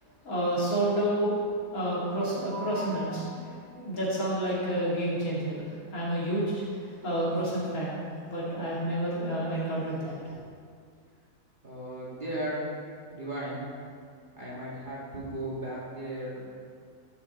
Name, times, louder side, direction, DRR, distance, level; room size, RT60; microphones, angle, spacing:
voice 1, 0.2-1.3 1.7-10.2, right 1 dB, 75° left, -7 dB, 2.9 m, -30 dB
voice 2, 11.6-12.7 13.1-13.6 14.4-16.5, right 1 dB, 35° right, -7 dB, 2.0 m, -36 dB
11.0 x 5.7 x 4.2 m, 2.1 s
omnidirectional pair, 1.5 m